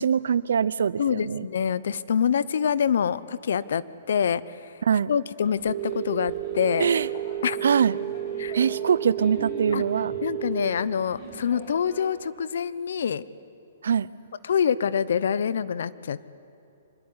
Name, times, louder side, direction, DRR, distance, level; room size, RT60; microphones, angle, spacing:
voice 1, 0.0-1.5 4.9-5.1 6.8-7.1 7.6-8.0 8.5-10.1 13.8-14.1, right 7 dB, 80° right, 19 dB, 0.7 m, -23 dB
voice 2, 1.0-4.7 5.1-6.9 7.4-7.6 8.4-8.6 9.7-9.8 10.2-13.2 14.4-16.4, left 7 dB, 70° left, 18 dB, 0.9 m, -26 dB
sound 1, 5.4-12.1, equal, 30° left, 6.2 m, -43 dB
Telephone, 5.7-10.7, right 12 dB, 55° right, 4.2 m, -32 dB
25.0 x 21.0 x 9.8 m, 2.8 s
hypercardioid pair, 160°, 0 cm